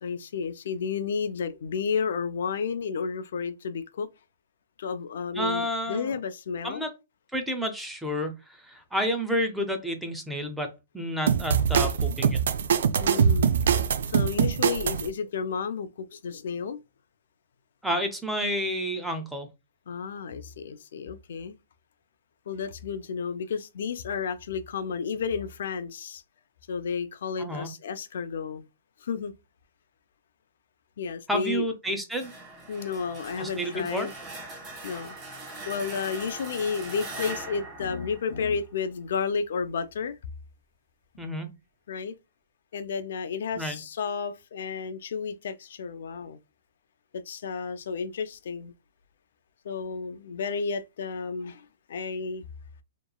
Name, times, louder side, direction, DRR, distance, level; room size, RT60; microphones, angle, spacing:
voice 1, 0.0-4.1 4.8-6.9 13.0-13.5 14.1-16.8 19.9-21.5 22.5-26.2 26.7-28.7 29.0-29.3 31.0-31.7 32.7-34.1 34.8-35.2 35.7-40.2 41.9-42.2 42.7-46.4 47.1-48.7 49.6-52.4, left 5 dB, 65° left, 0.3 m, -32 dB
voice 2, 5.4-6.1 6.6-6.9 7.3-8.3 8.7-12.4 17.8-19.5 27.4-27.7 31.3-32.3 33.4-34.1 41.2-41.5 43.6-43.8, equal, 5° right, 0.4 m, -30 dB
sound 1, 11.3-15.1, right 7 dB, 65° right, 0.3 m, -23 dB
sound 2, 32.2-38.9, right 2 dB, 20° right, 0.9 m, -41 dB
2.9 x 2.2 x 2.2 m
hypercardioid pair, 160°, 0 cm